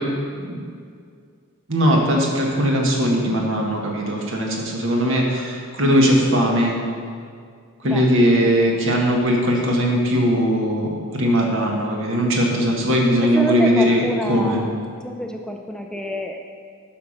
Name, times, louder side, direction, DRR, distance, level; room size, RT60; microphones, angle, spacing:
voice 1, 1.7-6.7 7.8-14.6, equal, 60° right, 0 dB, 1.7 m, -19 dB
voice 2, 8.4-8.8 13.3-14.7 15.0-16.4, equal, 5° left, 3 dB, 0.4 m, -28 dB
9.6 x 5.7 x 6.5 m, 2.2 s
head